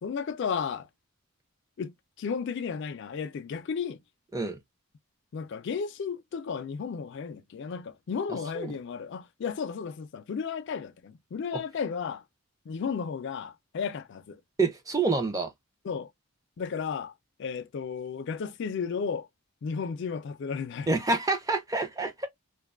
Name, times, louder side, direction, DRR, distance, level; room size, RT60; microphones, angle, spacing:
voice 1, 0.0-0.9 1.8-4.0 5.3-12.2 12.7-14.4 15.8-16.1 16.6-17.1 17.4-19.3 19.6-20.9, left 6 dB, 55° left, 0.3 m, -33 dB
voice 2, 14.6-15.5 20.9-22.3, right 3 dB, 15° right, 0.4 m, -27 dB
2.5 x 2.2 x 2.3 m
head